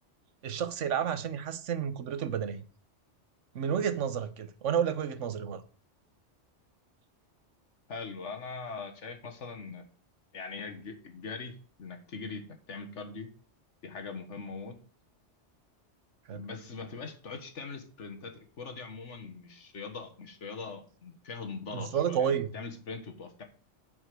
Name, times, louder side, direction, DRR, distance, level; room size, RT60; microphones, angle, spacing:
voice 1, 0.4-2.6 3.5-5.6 16.3-16.4 21.7-22.5, right 8 dB, 90° right, 1.2 m, -30 dB
voice 2, 7.9-9.8 10.3-13.3 13.8-14.8 16.3-23.4, left 4 dB, 75° left, 1.7 m, -41 dB
8.0 x 5.6 x 6.1 m
omnidirectional pair, 1.2 m